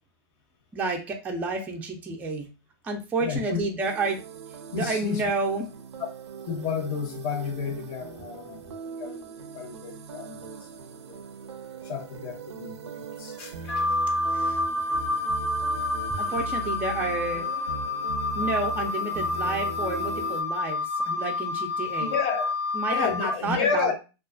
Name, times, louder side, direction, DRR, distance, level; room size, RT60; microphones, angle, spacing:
voice 1, 0.7-2.5 2.8-4.2 4.7-5.7 14.3-14.6 16.1-17.5 18.3-22.1 22.7-24.0, right 3 dB, 10° right, 0.3 m, -30 dB
voice 2, 3.2-3.6 4.7-5.2 6.5-9.2 9.5-10.5 11.1-11.3 11.8-13.8 22.0-22.5 22.9-24.0, left 6 dB, 40° left, 0.7 m, -31 dB
sound 1, 3.8-20.4, right 5 dB, 80° right, 0.4 m, -40 dB
Wind instrument woodwind instrument, 13.7-23.3, left 3 dB, 85° left, 0.4 m, -28 dB
2.4 x 2.1 x 2.4 m
hypercardioid pair, 125°, 14 cm